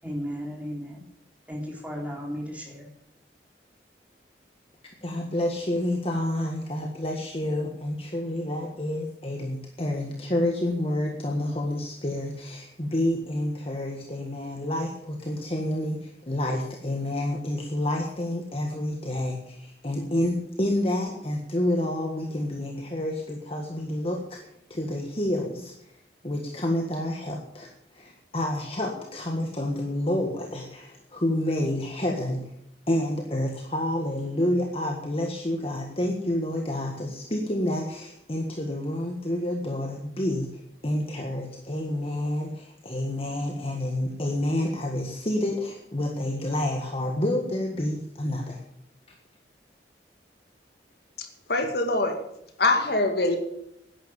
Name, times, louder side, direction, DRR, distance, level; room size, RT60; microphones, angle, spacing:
voice 1, 0.0-1.1 1.5-2.9, equal, 10° right, -2 dB, 3.8 m, -34 dB
voice 2, 5.0-24.4 24.7-25.9 26.2-32.5 32.9-48.6, left 1 dB, 30° left, 1 dB, 1.6 m, -29 dB
voice 3, 51.2-52.2 52.6-53.4, left 2 dB, 60° left, 4 dB, 2.3 m, -24 dB
11.0 x 10.5 x 8.8 m, 0.78 s
head